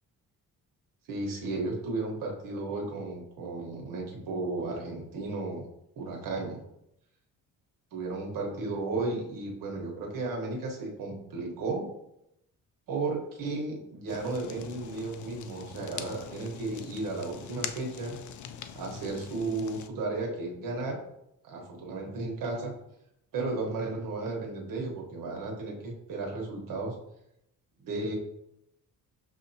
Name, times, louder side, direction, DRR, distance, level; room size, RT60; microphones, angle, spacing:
voice 1, 1.1-5.7 6.0-6.6 7.9-11.9 12.9-18.2 18.7-21.0 21.4-22.7 23.3-26.9 27.8-28.2, right 3 dB, 80° right, 0 dB, 1.2 m, -34 dB
Fire, 14.1-19.9, left 8 dB, 65° left, 0.4 m, -43 dB
6.4 x 2.8 x 2.7 m, 0.80 s
cardioid pair, 100°, 33 cm